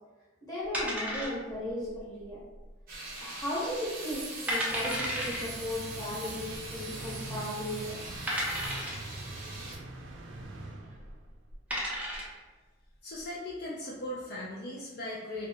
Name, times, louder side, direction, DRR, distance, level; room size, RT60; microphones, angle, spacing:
voice 1, 0.4-2.4 3.2-8.2, left 1 dB, 20° left, -8 dB, 0.9 m, -36 dB
sound 1, 0.7-1.7 2.0-2.1 2.7-3.1 3.5-3.6 4.1-4.2 4.5-5.4 6.5-6.6 7.3-7.4 8.3-9.1 10.9-11.1 11.5-12.4, equal, 5° right, 0.5 m, -33 dB
sound 2, 2.9-9.8, right 2 dB, 45° right, 0.7 m, -42 dB
sound 3, 4.7-11.4, right 1 dB, 75° right, 0.4 m, -44 dB
voice 2, 13.0-15.5, left 1 dB, 50° left, -4 dB, 0.4 m, -38 dB
2.4 x 2.1 x 2.8 m, 1.2 s
head